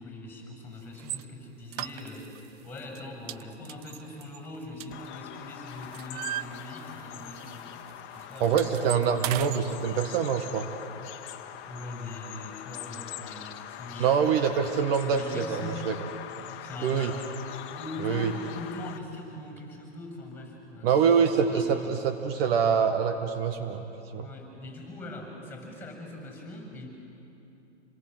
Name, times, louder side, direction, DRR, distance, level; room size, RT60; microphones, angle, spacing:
voice 1, 0.0-2.3 2.6-8.6 11.6-14.2 15.0-15.9 16.6-17.4 17.7-21.0 21.5-22.0 24.2-26.9, left 2 dB, 5° left, 2 dB, 6.8 m, -41 dB
sound 1, 1.0-1.2 1.7-2.5 2.8-3.0 3.3-5.3 5.7-7.1 7.4-7.6 7.9-9.6, right 14 dB, 35° right, 0.5 m, -37 dB
Bird vocalization bird call bird song, 4.9-19.0, left 11 dB, 35° left, 1.5 m, -42 dB
voice 2, 8.4-10.7 14.0-15.9 16.8-17.1 18.0-18.3 20.8-23.8 24.1-24.3, right 7 dB, 55° right, 6 dB, 1.8 m, -25 dB
28.5 x 21.0 x 7.9 m, 3.0 s
hypercardioid pair, 130°, 36 cm